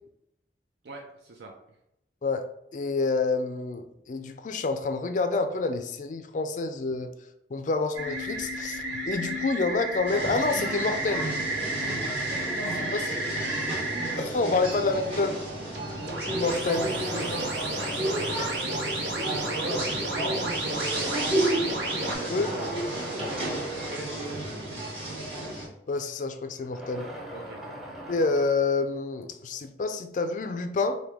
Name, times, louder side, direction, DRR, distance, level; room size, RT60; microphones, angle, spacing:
voice 1, 0.8-1.8 13.4-14.1 14.5-15.2 16.4-25.2 27.3-27.6, right 3 dB, 70° right, 0 dB, 0.5 m, -43 dB
voice 2, 2.2-7.1 7.5-11.3 12.6-13.8 14.2-15.3 16.3-16.9 22.3-22.5 25.9-27.1 28.1-31.0, left 3 dB, 45° left, 8 dB, 0.3 m, -28 dB
sound 1, 7.9-14.2 15.7-22.1, right 2 dB, 85° right, 1.1 m, -32 dB
sound 2, 10.1-25.7, right 1 dB, 35° right, 1.3 m, -32 dB
sound 3, 16.9-19.6 20.4-20.5 21.6-24.6 26.5-29.5, equal, ahead, 0.7 m, -41 dB
4.8 x 2.2 x 3.4 m, 0.83 s
head